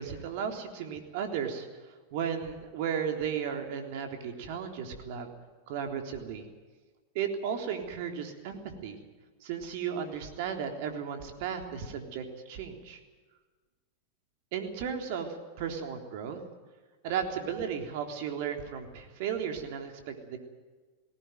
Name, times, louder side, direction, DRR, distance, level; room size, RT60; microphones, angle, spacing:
voice 1, 0.0-1.7 2.1-5.3 5.7-6.5 7.2-9.0 9.4-13.0 14.5-16.4 17.0-20.4, right 7 dB, 60° right, 4 dB, 3.6 m, -35 dB
19.0 x 18.0 x 9.4 m, 1.3 s
hypercardioid pair, 100°, 0 cm